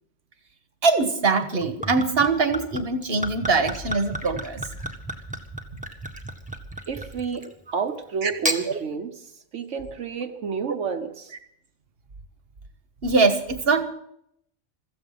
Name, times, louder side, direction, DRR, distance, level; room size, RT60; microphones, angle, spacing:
voice 1, 0.8-4.6 7.7-7.8 8.2-8.3 13.0-13.8, right 4 dB, 55° right, 9 dB, 1.5 m, -22 dB
Gurgling / Chink clink / Liquid, 1.4-7.6 8.2-8.6, right 1 dB, 5° right, 1.6 m, -33 dB
voice 2, 6.9-7.5 7.7-11.3, right 6 dB, 75° right, 6 dB, 1.4 m, -30 dB
16.0 x 14.5 x 5.7 m, 0.75 s
omnidirectional pair, 1.2 m